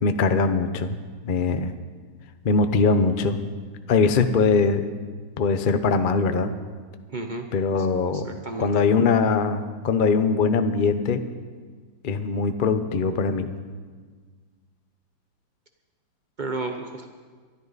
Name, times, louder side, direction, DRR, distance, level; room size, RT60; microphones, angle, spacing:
voice 1, 0.0-1.0 1.2-1.7 2.4-3.4 3.9-4.8 5.4-6.5 7.5-8.3 8.6-11.2 12.0-13.6, left 4 dB, 75° left, 9 dB, 0.4 m, -21 dB
voice 2, 7.1-7.5 7.8-7.9 8.1-8.8 16.4-17.1, right 3 dB, 85° right, 4 dB, 0.4 m, -32 dB
23.5 x 13.0 x 4.1 m, 1.5 s
omnidirectional pair, 2.2 m